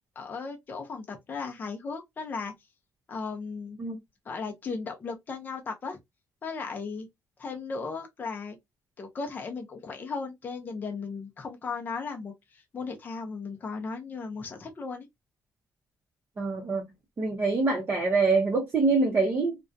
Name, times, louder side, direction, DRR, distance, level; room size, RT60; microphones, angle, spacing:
voice 1, 0.0-2.5 3.1-3.8 4.3-6.0 6.4-7.1 7.4-8.6 9.0-15.1, left 4 dB, 30° left, 0.5 m, -36 dB
voice 2, 16.4-16.8 17.2-19.6, right 3 dB, 30° right, 0.6 m, -25 dB
2.4 x 2.1 x 2.5 m
cardioid pair, 165°, 6 cm